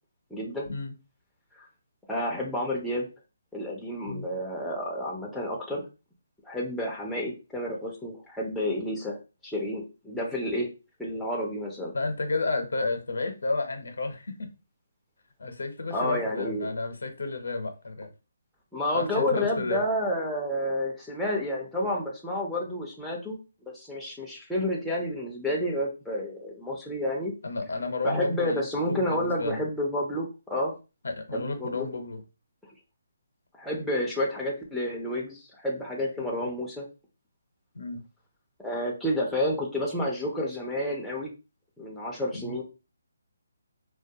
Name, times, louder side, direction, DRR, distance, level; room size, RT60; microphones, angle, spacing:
voice 1, 0.3-0.7 1.5-1.6 2.1-3.1 3.5-5.8 6.4-9.2 9.4-10.7 11.0-11.9 15.9-16.7 18.7-23.4 23.7-27.3 28.0-30.7 31.3-31.9 33.5-36.9 38.6-41.3 41.8-42.6, left 1 dB, ahead, 0.4 m, -30 dB
voice 2, 11.9-14.5 15.4-18.1 18.9-19.8 27.4-28.6 28.9-29.6 31.0-32.2 37.7-38.0 42.3-42.6, left 3 dB, 80° left, 0.6 m, -31 dB
2.2 x 2.2 x 2.6 m
hypercardioid pair, 170°, 0 cm